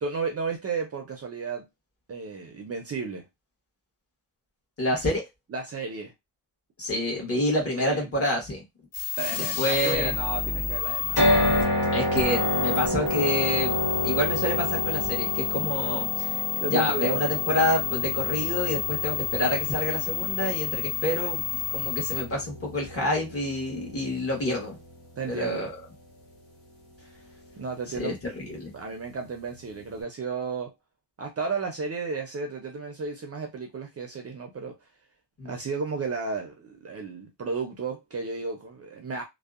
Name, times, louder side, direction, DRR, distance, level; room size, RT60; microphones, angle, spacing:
voice 1, 0.0-1.7 2.1-3.3 5.5-6.1 7.8-8.1 9.2-11.3 11.6-11.8 16.6-17.2 25.2-25.7 27.6-28.2 28.7-30.7 31.2-34.8 35.4-39.2, right 4 dB, 40° right, 0.4 m, -33 dB
voice 2, 4.8-5.2 6.8-8.6 9.3-10.1 11.9-16.4 16.7-21.4 21.7-24.8 25.3-25.7 28.0-28.7 35.4-35.5, left 1 dB, 35° left, 1.1 m, -28 dB
sound 1, 8.9-22.2, left 10 dB, 55° left, 0.7 m, -30 dB
sound 2, 11.2-25.3, left 1 dB, 80° left, 1.2 m, -30 dB
2.6 x 2.0 x 2.3 m
wide cardioid pair, 170°, 40 cm